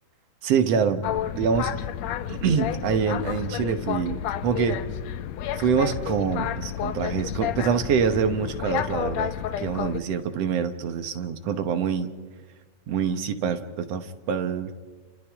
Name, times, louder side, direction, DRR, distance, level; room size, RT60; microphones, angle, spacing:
voice 1, 0.4-1.1 1.4-1.7 2.3-4.8 5.6-9.3 9.6-12.1 12.9-14.7, right 6 dB, 65° right, 9 dB, 2.1 m, -25 dB
Boat Water vehicle, 1.0-10.0, left 10 dB, 75° left, 1.9 m, -31 dB
30.0 x 28.5 x 3.6 m, 1.4 s
omnidirectional pair, 3.3 m